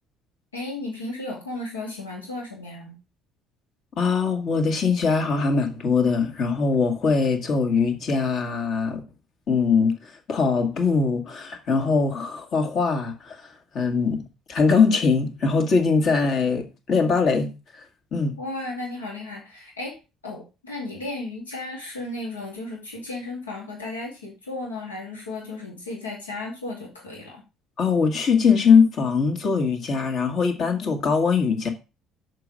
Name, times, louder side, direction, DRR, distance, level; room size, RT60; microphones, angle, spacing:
voice 1, 0.5-3.0 18.4-20.0 20.2-27.4, left 2 dB, 85° left, 2.5 m, -34 dB
voice 2, 4.0-9.0 9.5-9.9 10.3-13.4 13.7-14.2 14.5-17.5 18.1-18.4 27.8-31.7, left 5 dB, 50° left, 2.1 m, -21 dB
6.8 x 5.0 x 6.3 m
figure-of-eight pair, 55°, 0 cm